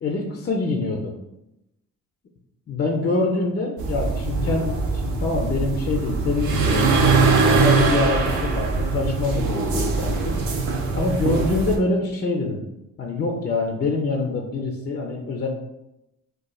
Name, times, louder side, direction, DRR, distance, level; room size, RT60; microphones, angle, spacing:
voice 1, 0.0-1.1 2.7-7.0 7.4-10.4 10.9-12.6 13.0-15.5, left 3 dB, 35° left, 1 dB, 0.5 m, -25 dB
sound 1, 3.8-11.8, right 4 dB, 75° right, 0.7 m, -22 dB
4.0 x 2.3 x 2.3 m, 0.88 s
cardioid pair, 90°, 30 cm